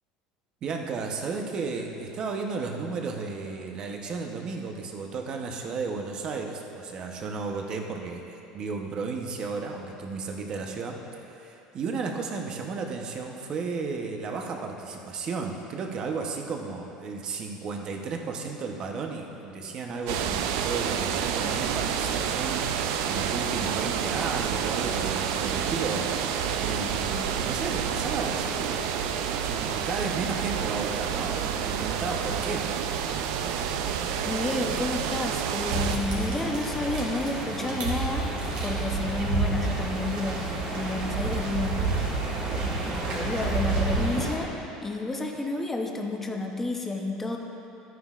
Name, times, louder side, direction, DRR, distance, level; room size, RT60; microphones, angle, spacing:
voice 1, 0.6-11.0 11.2-22.6 23.1-29.0 29.4-32.6, right 4 dB, 35° right, 2 dB, 0.8 m, -33 dB
sound 1, 20.1-36.0, right 8 dB, 85° right, 0.5 m, -29 dB
voice 2, 34.2-38.3 38.6-41.9 42.5-47.4, left 2 dB, 10° left, 2 dB, 0.7 m, -31 dB
sound 2, 35.7-44.3, right 3 dB, 65° right, 1.9 m, -29 dB
13.0 x 9.2 x 2.4 m, 2.9 s
cardioid pair, 155°, 2 cm